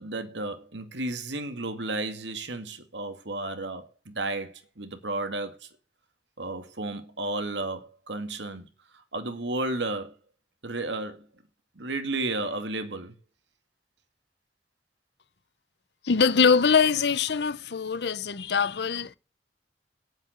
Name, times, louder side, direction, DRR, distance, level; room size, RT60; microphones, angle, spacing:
voice 1, 0.0-5.7 6.4-8.7 8.9-10.1 10.6-11.3 11.8-13.1, right 2 dB, 80° right, 2.1 m, -33 dB
voice 2, 16.0-19.2, left 5 dB, 65° left, 0.7 m, -23 dB
9.3 x 7.6 x 7.9 m
head